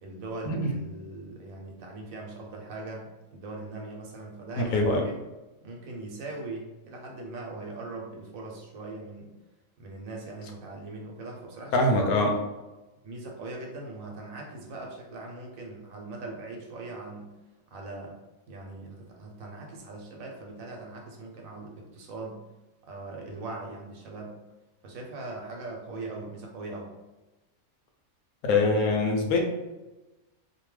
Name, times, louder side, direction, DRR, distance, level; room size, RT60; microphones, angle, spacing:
voice 1, 0.0-5.2 5.6-9.3 9.8-12.1 13.0-17.3 17.7-18.2 18.5-22.4 22.8-24.4 24.8-26.9, right 2 dB, 75° right, 0 dB, 1.1 m, -40 dB
voice 2, 4.7-5.0 11.7-12.3 28.4-29.4, left 2 dB, 85° left, 2 dB, 1.0 m, -23 dB
2.8 x 2.2 x 3.1 m, 1.1 s
omnidirectional pair, 1.5 m